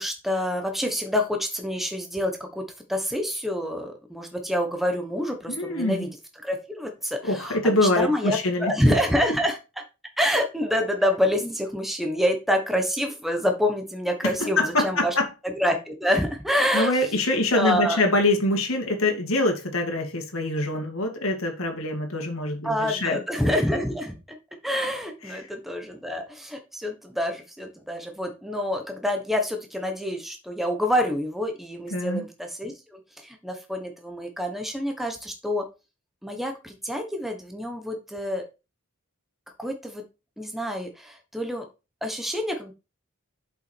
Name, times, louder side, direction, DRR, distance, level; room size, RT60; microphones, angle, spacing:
voice 1, 0.0-2.6 2.9-6.1 6.4-9.6 10.2-15.1 15.4-17.0 17.5-18.0 22.6-24.2 24.6-35.6 36.2-38.5 39.6-40.0 40.4-41.6 42.0-42.7, equal, ahead, 4 dB, 1.2 m, -27 dB
voice 2, 5.5-6.0 7.2-8.9 14.4-15.3 16.7-23.2 31.9-32.2, left 2 dB, 65° left, 3 dB, 2.4 m, -24 dB
7.3 x 5.8 x 4.5 m, 0.29 s
head